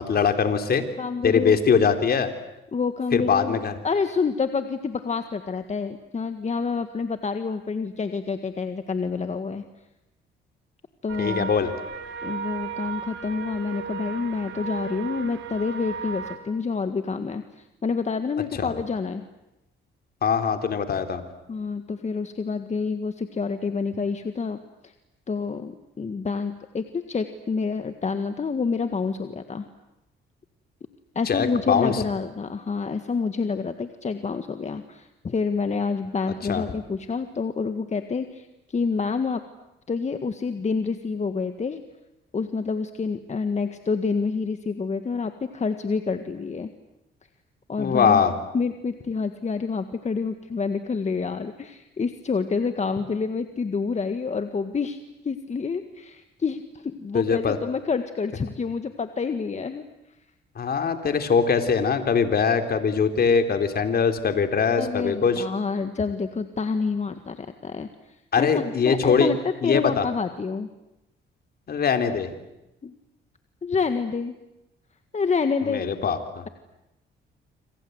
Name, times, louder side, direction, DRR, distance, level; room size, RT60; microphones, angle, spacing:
voice 1, 0.0-0.8 1.2-2.3 3.1-3.8 11.2-11.7 18.6-18.7 20.2-21.2 31.3-31.9 36.4-36.6 47.8-48.3 57.1-57.6 60.6-65.4 68.3-69.3 69.6-70.0 71.7-72.3 75.6-76.4, left 6 dB, 50° left, 7 dB, 3.7 m, -22 dB
voice 2, 1.0-1.8 2.7-3.6 3.8-9.6 11.0-11.5 12.2-19.2 21.5-24.6 24.8-24.9 25.3-29.7 31.2-39.4 39.9-41.8 42.3-46.7 47.7-48.2 48.5-55.0 55.2-59.8 64.8-70.7 72.8-72.9 73.6-74.4 75.1-76.1, left 5 dB, 35° left, 8 dB, 1.8 m, -28 dB
sound 1, 11.1-16.4, right 6 dB, 70° right, 3.5 m, -35 dB
28.0 x 26.5 x 8.1 m, 0.93 s
cardioid pair, 90°, 20 cm